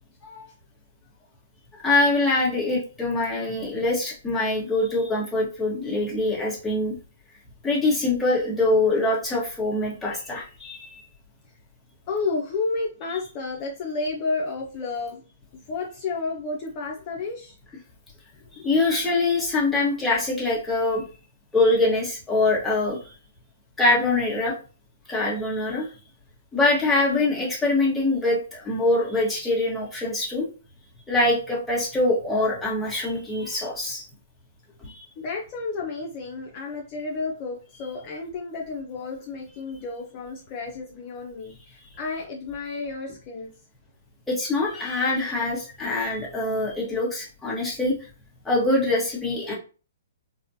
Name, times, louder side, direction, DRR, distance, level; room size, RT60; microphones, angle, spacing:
voice 1, 0.2-0.5 12.1-15.2 15.7-17.6 18.5-18.7 35.2-43.5 45.3-45.4, left 3 dB, 35° left, -1 dB, 0.7 m, -31 dB
voice 2, 1.8-7.0 7.6-11.0 18.5-21.0 21.5-23.1 23.8-24.5 25.1-25.9 26.5-30.5 31.1-34.0 34.8-35.0 44.3-47.9 48.4-49.5, left 2 dB, 5° left, -5 dB, 1.4 m, -24 dB
4.1 x 2.3 x 2.7 m, 0.36 s
hypercardioid pair, 140°, 0 cm